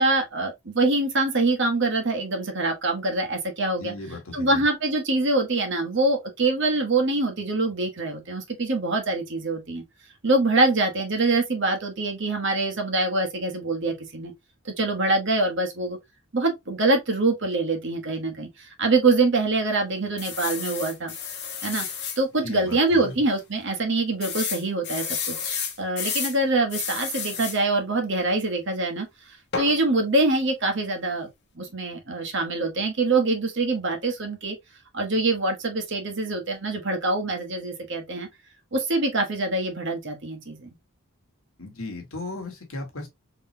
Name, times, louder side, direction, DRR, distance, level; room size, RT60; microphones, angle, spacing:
voice 1, 0.0-3.9 4.3-9.8 10.2-14.3 14.6-16.0 16.3-21.1 21.6-21.9 22.2-31.3 31.6-34.6 34.9-38.3 38.7-40.8, right 2 dB, 55° right, 1.1 m, -24 dB
voice 2, 3.7-4.6 22.4-23.1 41.6-43.1, left 2 dB, 70° left, 1.3 m, -36 dB
sound 1, 20.2-22.2 22.7-22.8 23.1-23.2 24.2-26.4 26.7-27.6 29.5-29.8, left 6 dB, 50° left, 1.0 m, -31 dB
3.8 x 3.1 x 2.7 m
head